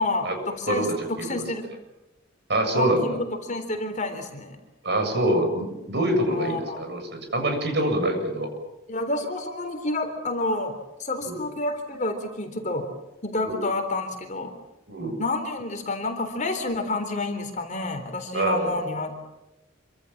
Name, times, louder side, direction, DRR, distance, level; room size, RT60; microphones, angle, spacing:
voice 1, 0.0-1.7 2.7-4.6 6.3-6.8 8.9-12.9 13.2-14.5 15.2-19.1, left 2 dB, 40° left, 6 dB, 3.8 m, -29 dB
voice 2, 0.7-1.5 2.5-3.2 4.8-8.5 11.2-11.4 13.4-13.6 14.9-15.2 18.3-18.9, right 1 dB, 55° right, 4 dB, 7.7 m, -25 dB
27.5 x 25.5 x 7.4 m, 0.95 s
head